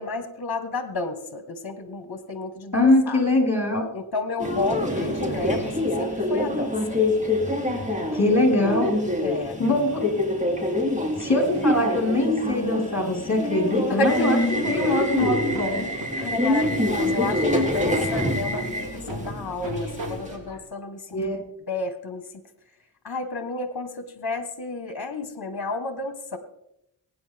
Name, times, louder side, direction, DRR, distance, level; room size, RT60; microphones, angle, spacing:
voice 1, 0.0-3.2 3.9-7.0 9.2-9.6 13.9-15.0 16.1-21.2 21.7-22.3 23.0-26.4, left 3 dB, 55° left, 8 dB, 1.6 m, -31 dB
voice 2, 2.7-3.9 8.1-9.0 9.6-10.1 11.2-14.4 14.6-15.9 21.1-21.4, left 2 dB, 35° left, 1 dB, 4.8 m, -22 dB
Subway metro underground, 4.4-20.4, left 1 dB, 15° right, 3.1 m, -26 dB
Laughter / Drum, 14.6-20.6, left 1 dB, 70° right, 3.6 m, -36 dB
23.0 x 9.8 x 3.5 m, 0.83 s
cardioid pair, 45°, 46 cm